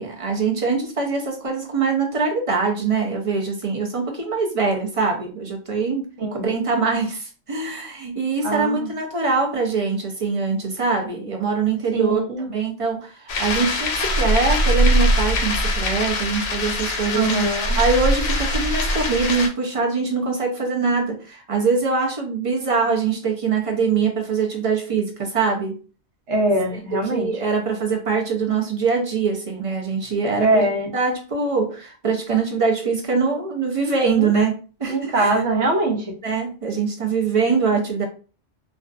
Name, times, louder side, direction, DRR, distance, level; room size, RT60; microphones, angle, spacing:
voice 1, 0.0-6.1 6.4-12.2 12.5-17.3 17.7-25.8 26.9-35.4 36.2-38.1, right 4 dB, 45° right, 0.4 m, -23 dB
voice 2, 8.4-8.9 11.9-12.5 17.1-17.8 26.3-27.3 30.4-30.9 34.2-34.3 34.9-36.2, right 2 dB, 75° right, 1.0 m, -22 dB
sound 1, 13.3-19.5, left 1 dB, 85° left, 0.9 m, -22 dB
2.4 x 2.3 x 2.3 m
omnidirectional pair, 1.2 m